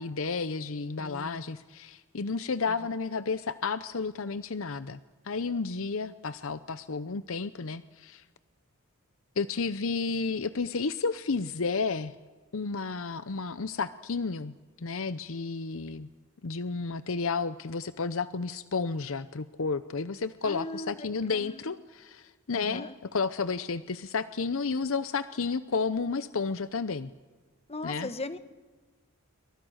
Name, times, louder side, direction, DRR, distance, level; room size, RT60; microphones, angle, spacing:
voice 1, 0.0-5.0 5.2-8.2 9.4-12.1 12.5-16.1 16.4-27.1 27.8-28.1, left 4 dB, 65° left, 14 dB, 0.7 m, -32 dB
voice 2, 1.0-1.5 2.7-2.9 6.0-6.1 20.4-21.7 22.5-22.9 27.7-28.4, left 2 dB, 25° left, 12 dB, 1.2 m, -39 dB
28.0 x 24.5 x 6.4 m, 1.3 s
head